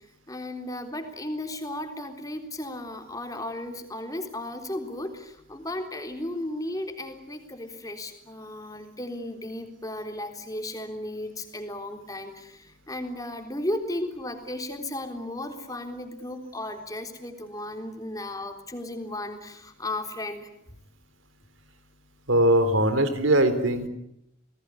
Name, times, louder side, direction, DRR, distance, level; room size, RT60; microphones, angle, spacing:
voice 1, 0.3-20.5, left 1 dB, 20° left, 5 dB, 3.6 m, -35 dB
voice 2, 22.3-23.9, right 1 dB, 80° right, 11 dB, 3.7 m, -21 dB
28.5 x 19.5 x 9.8 m, 0.80 s
head